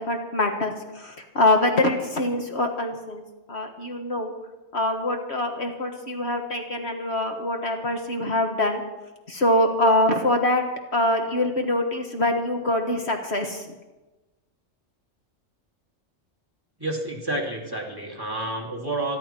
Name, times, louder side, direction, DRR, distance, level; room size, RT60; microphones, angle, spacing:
voice 1, 0.0-3.2 3.5-4.3 4.7-8.8 9.3-10.6 10.9-13.7, left 1 dB, 55° left, 3 dB, 1.8 m, -24 dB
voice 2, 16.8-19.2, right 2 dB, 15° right, -2 dB, 2.7 m, -29 dB
27.5 x 11.0 x 4.5 m, 1.1 s
omnidirectional pair, 1.3 m